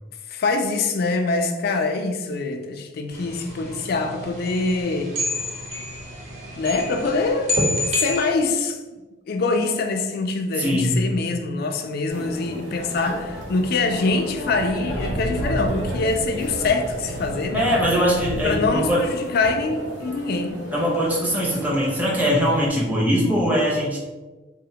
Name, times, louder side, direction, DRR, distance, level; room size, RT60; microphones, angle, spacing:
voice 1, 0.3-5.1 6.6-7.5 7.9-8.8 9.3-17.7 18.4-20.6, left 3 dB, 55° left, 6 dB, 0.3 m, -24 dB
sound 1, 3.1-8.2, left 1 dB, 40° right, 0.8 m, -28 dB
voice 2, 10.6-11.0 17.5-19.0 20.7-24.0, equal, 10° right, -4 dB, 0.6 m, -21 dB
sound 2, 12.1-22.7, equal, 90° right, 0.9 m, -35 dB
sound 3, 13.0-18.9, right 1 dB, 60° right, 0.4 m, -32 dB
3.7 x 2.1 x 2.7 m, 1.2 s
head